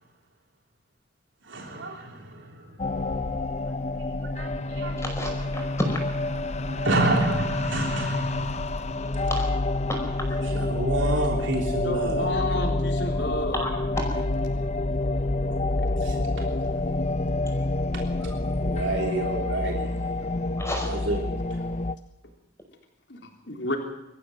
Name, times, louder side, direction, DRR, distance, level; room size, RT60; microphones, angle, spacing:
voice 1, 1.4-3.4 4.2-5.8 6.3-8.8 10.4-12.3 15.5-15.6 16.0-16.5 17.9-18.0 18.4-20.1 20.9-21.4, right 2 dB, 80° right, 1 dB, 3.4 m, -30 dB
sound 1, 2.8-22.0, left 2 dB, 35° left, 0.7 m, -28 dB
voice 2, 5.0-6.0 9.3-10.4 13.1-13.2 13.5-13.7 14.0-14.1 20.6-20.9, left 1 dB, 15° left, 2 dB, 5.3 m, -31 dB
voice 3, 11.8-13.6 23.1-23.8, left 2 dB, 70° left, 2 dB, 3.6 m, -30 dB
25.0 x 14.5 x 7.9 m, 0.93 s
head